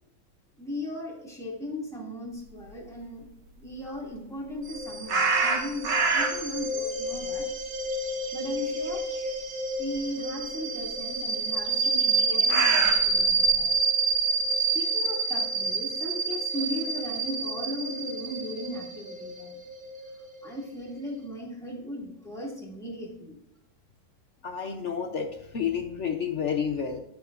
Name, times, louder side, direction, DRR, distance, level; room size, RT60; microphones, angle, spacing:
voice 1, 0.6-3.3 3.6-7.5 8.3-9.0 9.8-13.7 14.6-19.6 20.4-23.4, left 1 dB, ahead, -3 dB, 2.2 m, -37 dB
sound 1, 4.7-20.9, right 4 dB, 50° right, 2.3 m, -28 dB
sound 2, 5.1-6.6 7.0-8.7 8.9-9.1 9.9-10.0 11.8-13.6, right 4 dB, 75° right, 1.9 m, -26 dB
voice 2, 24.4-27.0, left 7 dB, 55° left, 3 dB, 0.9 m, -30 dB
14.0 x 6.3 x 2.5 m, 0.84 s
omnidirectional pair, 2.0 m